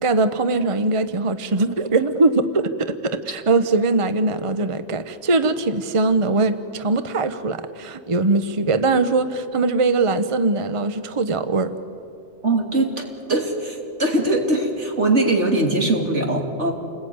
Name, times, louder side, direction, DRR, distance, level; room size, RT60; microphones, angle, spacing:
voice 1, 0.0-11.7, right 3 dB, 30° right, 10 dB, 0.9 m, -21 dB
voice 2, 12.4-16.7, right 2 dB, 75° right, 1 dB, 3.3 m, -21 dB
28.5 x 20.5 x 9.5 m, 2.8 s
omnidirectional pair, 1.2 m